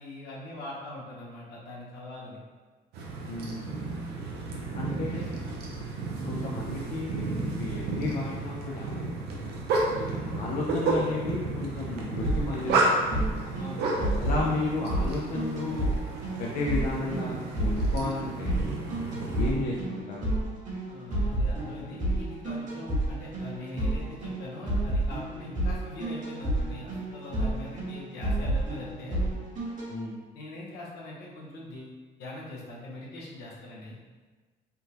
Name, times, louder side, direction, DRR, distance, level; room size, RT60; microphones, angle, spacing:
voice 1, 0.0-2.4 4.7-5.3 13.6-14.0 20.9-29.2 30.3-34.0, left 1 dB, 75° left, -4 dB, 0.9 m, -42 dB
sound 1, 2.9-19.5, right 2 dB, 75° right, 0.6 m, -32 dB
voice 2, 3.2-4.0 4.7-5.4 6.2-9.1 9.9-13.0 14.2-15.9 16.4-18.7 19.4-20.3 29.9-30.2, left 2 dB, 55° left, -3 dB, 0.5 m, -33 dB
sound 2, 12.2-29.9, right 1 dB, 50° right, 1.2 m, -30 dB
3.6 x 2.3 x 2.8 m, 1.4 s
cardioid pair, 110°, 17 cm